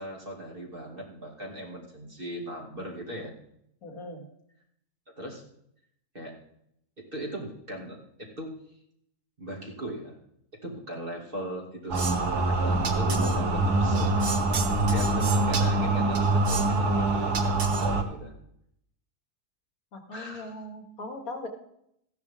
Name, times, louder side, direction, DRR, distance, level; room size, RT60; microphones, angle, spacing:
voice 1, 0.0-3.3 5.2-5.4 6.1-6.3 7.0-8.5 9.4-10.2 10.6-14.4 14.7-18.3 20.1-20.5, equal, 35° right, -1 dB, 2.6 m, -38 dB
voice 2, 3.8-4.3 19.9-21.5, left 2 dB, 65° left, 3 dB, 2.5 m, -39 dB
sound 1, 11.9-18.0, right 2 dB, 85° right, 1.9 m, -24 dB
14.5 x 11.0 x 3.6 m, 0.73 s
omnidirectional pair, 1.6 m